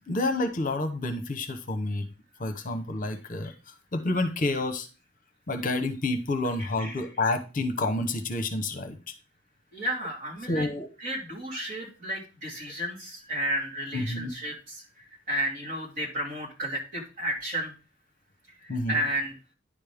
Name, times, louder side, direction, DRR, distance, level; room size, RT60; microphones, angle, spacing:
voice 1, 0.0-2.1 2.4-3.5 3.9-4.9 5.5-9.0 10.5-10.9 13.9-14.3 18.7-19.0, left 2 dB, 45° left, 8 dB, 0.9 m, -29 dB
voice 2, 6.6-7.0 9.7-10.7 11.0-17.7 18.6-19.3, right 1 dB, 45° right, -2 dB, 2.9 m, -32 dB
10.0 x 5.4 x 3.4 m, 0.31 s
head